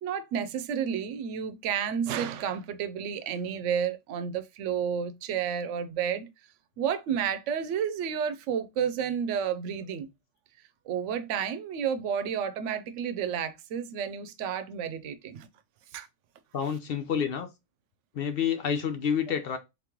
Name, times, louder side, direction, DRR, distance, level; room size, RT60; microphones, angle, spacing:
voice 1, 0.0-6.3 6.8-10.1 10.9-15.5 15.9-16.1, right 8 dB, 85° right, 0.9 m, -31 dB
voice 2, 16.5-17.5 18.1-19.6, left 7 dB, 60° left, 0.8 m, -28 dB
3.8 x 3.0 x 3.6 m
omnidirectional pair, 1.2 m